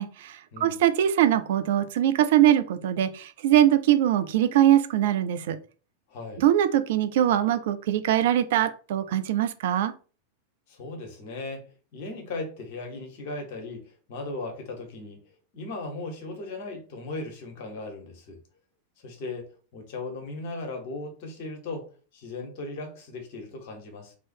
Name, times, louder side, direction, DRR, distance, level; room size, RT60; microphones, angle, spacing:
voice 1, 0.0-5.6 6.4-9.9, right 11 dB, 55° right, 0.4 m, -22 dB
voice 2, 0.5-0.8 6.1-6.4 10.7-15.2 15.5-18.4 19.0-21.9 22.1-24.2, left 2 dB, 45° left, 1.4 m, -37 dB
3.0 x 3.0 x 4.5 m
figure-of-eight pair, 90°, 0 cm